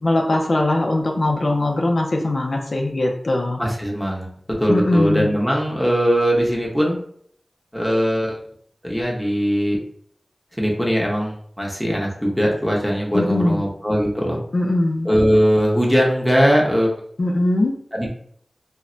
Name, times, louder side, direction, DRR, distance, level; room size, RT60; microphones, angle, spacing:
voice 1, 0.0-3.6 4.7-5.3 13.1-13.6 14.5-15.1 17.2-17.7, left 1 dB, 70° left, 0 dB, 0.4 m, -20 dB
voice 2, 3.6-7.0 7.7-8.4 8.8-9.8 10.6-14.4 15.0-16.9 17.9-18.1, equal, ahead, -2 dB, 0.8 m, -20 dB
2.1 x 2.1 x 3.7 m, 0.62 s
wide cardioid pair, 50°, 0 cm